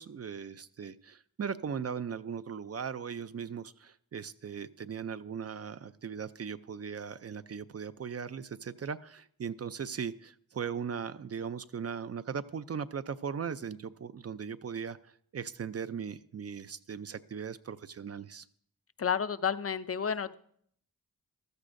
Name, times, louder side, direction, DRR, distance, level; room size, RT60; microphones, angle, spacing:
voice 1, 0.0-18.5, right 7 dB, 45° right, 14 dB, 0.4 m, -38 dB
voice 2, 19.0-20.3, left 7 dB, 45° left, 13 dB, 0.4 m, -31 dB
14.5 x 13.0 x 2.6 m, 0.65 s
wide cardioid pair, 100°, 35 cm